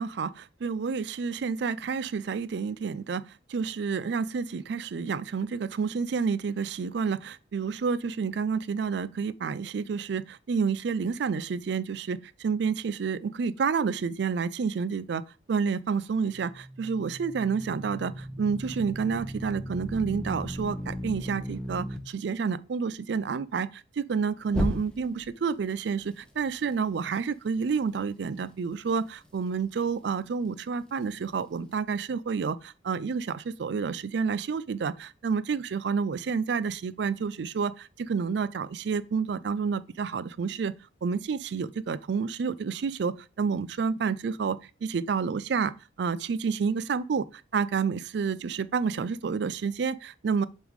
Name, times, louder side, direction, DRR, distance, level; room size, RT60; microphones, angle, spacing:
voice 1, 0.0-3.2 3.5-15.2 15.5-40.7 41.0-45.7 46.0-50.4, right 5 dB, 60° right, 0.4 m, -29 dB
sound 1, 16.2-22.0 24.5-25.3, equal, 5° left, 0.8 m, -35 dB
7.3 x 3.6 x 4.7 m
head